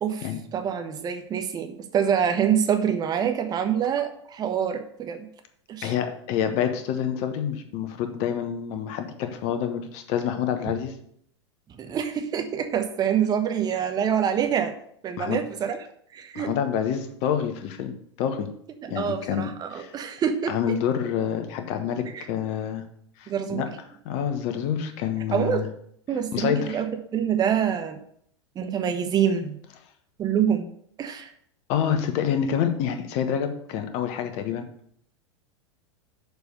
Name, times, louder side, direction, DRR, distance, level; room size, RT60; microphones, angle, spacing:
voice 1, 0.0-5.3 5.7-5.9 11.7-14.7 15.0-15.8 16.1-16.5 18.8-20.7 22.1-22.3 23.3-23.7 25.3-25.6 26.1-28.0 28.5-29.6 30.2-30.7 31.0-31.3, right 8 dB, 25° right, 7 dB, 1.1 m, -26 dB
voice 2, 5.8-11.0 15.2-15.4 16.3-18.5 18.9-19.9 20.5-22.9 23.2-23.7 24.0-25.7 26.3-26.8 31.7-34.7, left 8 dB, 45° left, 7 dB, 1.2 m, -27 dB
6.7 x 4.7 x 6.7 m, 0.66 s
figure-of-eight pair, 90°, 15 cm